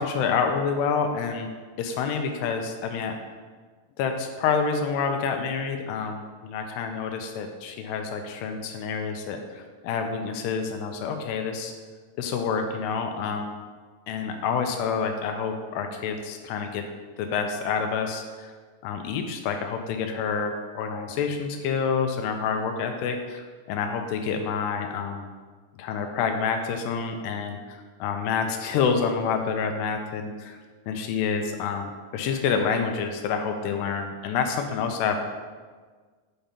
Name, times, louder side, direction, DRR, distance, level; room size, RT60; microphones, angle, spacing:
voice 1, 0.0-1.5 1.8-3.2 4.0-11.7 12.2-13.6 14.1-16.8 17.2-18.5 18.8-25.3 25.8-30.6 30.9-35.2, left 6 dB, 85° left, 5 dB, 2.6 m, -28 dB
8.9 x 5.2 x 4.3 m, 1.5 s
omnidirectional pair, 5.1 m